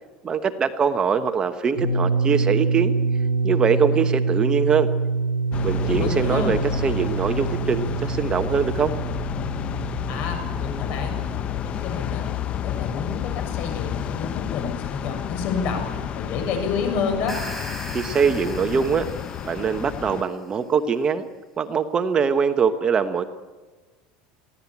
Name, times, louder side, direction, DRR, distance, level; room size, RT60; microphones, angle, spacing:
voice 1, 0.2-2.9 3.4-4.9 5.6-8.9 17.9-19.1 19.4-21.3 21.6-23.2, right 6 dB, 25° right, 8 dB, 1.1 m, -22 dB
sound 1, 1.8-13.5, right 4 dB, 80° right, 1.8 m, -26 dB
sound 2, 5.5-20.2, left 10 dB, 35° left, 0.7 m, -31 dB
voice 2, 5.8-6.6 10.1-17.4, left 5 dB, 55° left, 5 dB, 7.2 m, -29 dB
sound 3, 17.1-20.3, equal, 5° left, 4.9 m, -38 dB
23.5 x 16.5 x 8.5 m, 1.3 s
supercardioid pair, 140°, 3 cm